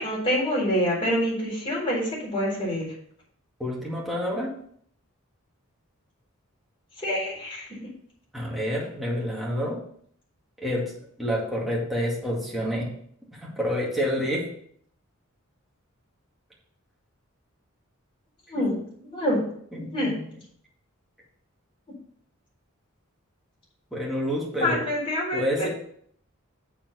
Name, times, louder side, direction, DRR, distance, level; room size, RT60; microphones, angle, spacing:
voice 1, 0.0-2.9 7.0-7.7 18.5-18.7 19.1-19.4 19.9-20.1 24.6-25.7, equal, 25° left, -5 dB, 4.0 m, -26 dB
voice 2, 3.6-4.5 8.3-9.8 10.6-10.9 11.2-12.9 13.3-14.5 19.3-19.4 19.7-20.3 23.9-24.9 25.3-25.7, equal, ahead, -5 dB, 2.2 m, -28 dB
7.2 x 4.9 x 6.6 m, 0.62 s
head